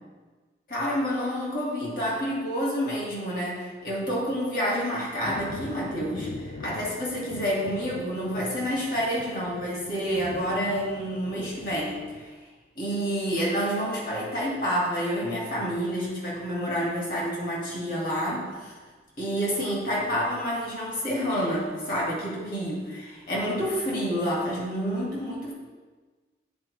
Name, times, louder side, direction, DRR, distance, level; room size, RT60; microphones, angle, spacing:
voice 1, 0.7-12.0 12.8-18.7 19.2-25.5, equal, 50° left, -5 dB, 2.0 m, -28 dB
Thunder, 5.2-12.2, left 3 dB, 90° left, 0.5 m, -42 dB
9.3 x 4.5 x 3.3 m, 1.4 s
head